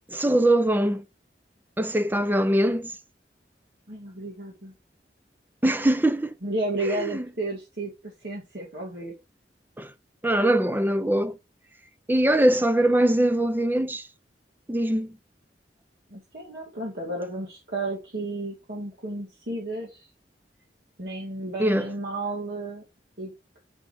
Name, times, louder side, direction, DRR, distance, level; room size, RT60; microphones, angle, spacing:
voice 1, 0.1-1.0 1.8-2.9 5.6-6.3 6.9-7.2 9.8-9.9 10.2-11.4 12.1-14.1 14.7-15.2 21.6-21.9, right 1 dB, 10° right, 0.5 m, -22 dB
voice 2, 3.9-4.7 6.4-9.1 16.1-20.0 21.0-22.8 23.2-23.3, right 2 dB, 60° right, 2.1 m, -32 dB
6.3 x 4.9 x 5.1 m
head